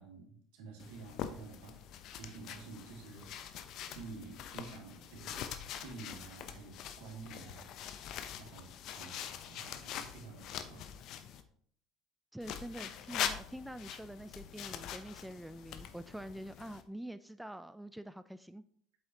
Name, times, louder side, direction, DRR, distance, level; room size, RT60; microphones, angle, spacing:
voice 1, 0.0-1.8 2.2-5.4 5.8-7.7 8.4-10.8, right 4 dB, 75° right, 0 dB, 2.4 m, -50 dB
sound 1, 0.8-11.4 12.4-16.8, left 9 dB, 60° left, 0.7 m, -43 dB
voice 2, 12.3-18.6, right 1 dB, 5° right, 12 dB, 0.4 m, -46 dB
8.2 x 7.2 x 2.9 m, 0.62 s
hypercardioid pair, 70°, 0 cm